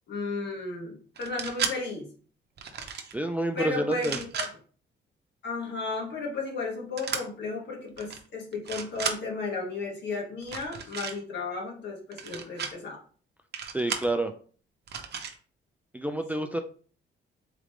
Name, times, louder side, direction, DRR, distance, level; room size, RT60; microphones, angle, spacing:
voice 1, 0.1-2.1 3.5-4.4 5.4-13.0 16.4-16.6, left 3 dB, 60° left, -1 dB, 1.6 m, -34 dB
sound 1, 1.2-1.7 2.6-3.1 3.9-4.5 7.0-7.2 8.0-8.2 8.5-9.2 10.4-11.1 12.1-12.7 13.5-14.1 14.9-15.3, right 6 dB, 55° right, 0.8 m, -34 dB
voice 2, 3.1-4.2 13.7-14.3 15.9-16.6, right 1 dB, 10° right, 6 dB, 0.4 m, -28 dB
3.8 x 3.3 x 3.1 m, 0.43 s
cardioid pair, 90°, 20 cm